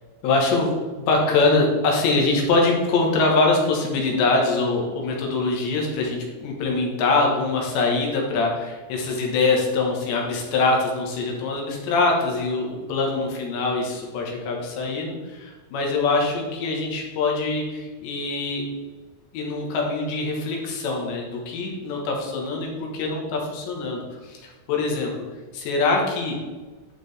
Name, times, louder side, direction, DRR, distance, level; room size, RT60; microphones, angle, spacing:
voice 1, 0.2-0.7 1.1-18.6 19.3-25.1 25.5-26.4, left 3 dB, 70° left, -1 dB, 3.2 m, -23 dB
11.5 x 4.9 x 3.3 m, 1.3 s
omnidirectional pair, 5.8 m